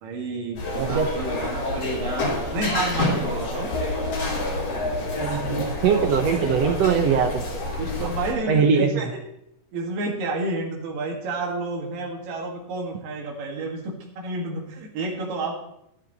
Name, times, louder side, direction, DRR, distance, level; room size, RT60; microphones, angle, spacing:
voice 1, 0.0-3.7 8.0-9.2 9.7-15.6, right 2 dB, 90° right, 1 dB, 3.5 m, -30 dB
sound 1, 0.6-8.3, left 2 dB, 85° left, 4.8 m, -28 dB
voice 2, 5.2-7.4 7.8-8.1 8.5-8.9, right 6 dB, 70° right, 4 dB, 1.7 m, -22 dB
12.0 x 12.0 x 4.1 m, 0.76 s
omnidirectional pair, 3.8 m